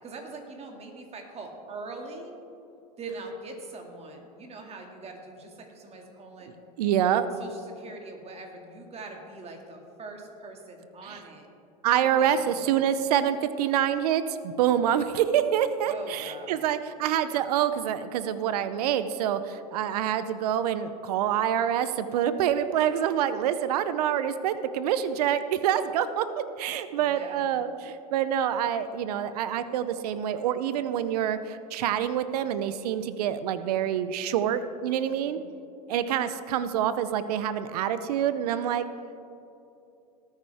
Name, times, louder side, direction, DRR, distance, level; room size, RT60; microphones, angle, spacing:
voice 1, 0.0-2.4 3.0-6.5 7.4-11.5 12.0-12.8 15.8-16.7 27.0-27.6 35.1-35.5, right 3 dB, 30° right, 2 dB, 2.2 m, -42 dB
voice 2, 6.8-7.3 11.0-11.2 11.8-26.3 26.6-35.4 35.9-38.8, right 10 dB, 75° right, 12 dB, 0.7 m, -26 dB
18.5 x 9.0 x 3.5 m, 2.8 s
hypercardioid pair, 95°, 20 cm